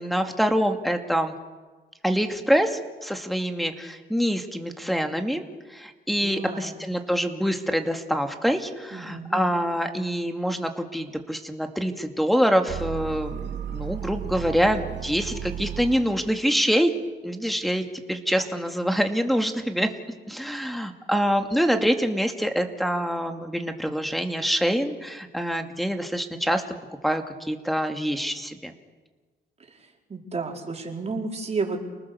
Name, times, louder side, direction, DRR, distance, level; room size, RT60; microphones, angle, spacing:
voice 1, 0.0-1.3 2.0-5.4 5.7-16.9 17.2-19.9 20.3-26.6 27.0-28.7, equal, ahead, 5 dB, 2.4 m, -25 dB
voice 2, 6.2-6.9 8.9-9.4 30.1-31.8, right 4 dB, 35° right, 0 dB, 4.6 m, -31 dB
sound 1, 12.7-16.5, right 10 dB, 60° right, 2.4 m, -34 dB
30.0 x 19.5 x 7.1 m, 1.3 s
cardioid pair, 90°, 20 cm